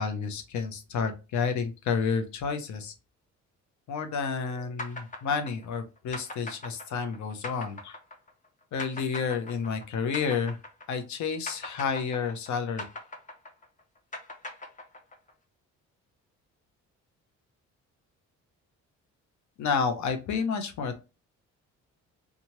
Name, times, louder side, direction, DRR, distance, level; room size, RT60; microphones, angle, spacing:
voice 1, 0.0-2.9 3.9-8.0 8.7-10.6 10.9-12.8 19.6-21.0, left 5 dB, 70° left, 7 dB, 0.7 m, -30 dB
sound 1, 4.8-11.2 11.5-15.3, left 2 dB, 25° left, 0.7 m, -40 dB
2.8 x 2.4 x 3.0 m, 0.29 s
cardioid pair, 90°, 30 cm